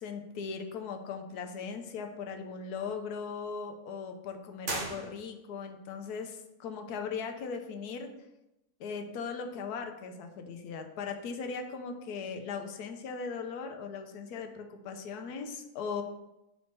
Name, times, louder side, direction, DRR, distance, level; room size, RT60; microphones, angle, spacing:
voice 1, 0.0-8.1 8.8-16.0, left 5 dB, 80° left, 5 dB, 1.2 m, -38 dB
sound 1, 4.6-5.7, right 2 dB, 40° right, 1.0 m, -38 dB
4.4 x 4.2 x 5.7 m, 0.92 s
omnidirectional pair, 1.6 m